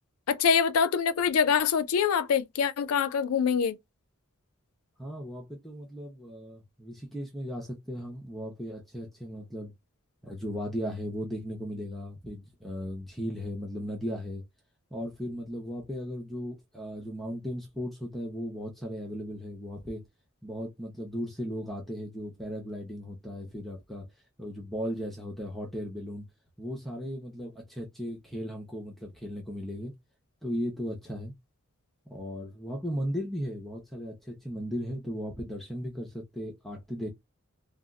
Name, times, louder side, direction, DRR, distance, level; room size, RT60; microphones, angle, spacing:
voice 1, 0.3-3.8, left 7 dB, 85° left, 0.4 m, -25 dB
voice 2, 5.0-9.7 10.2-14.4 14.9-20.0 20.4-24.1 24.4-26.2 26.6-29.9 30.4-31.3 32.1-37.1, equal, ahead, 0.5 m, -36 dB
2.2 x 2.1 x 3.5 m
head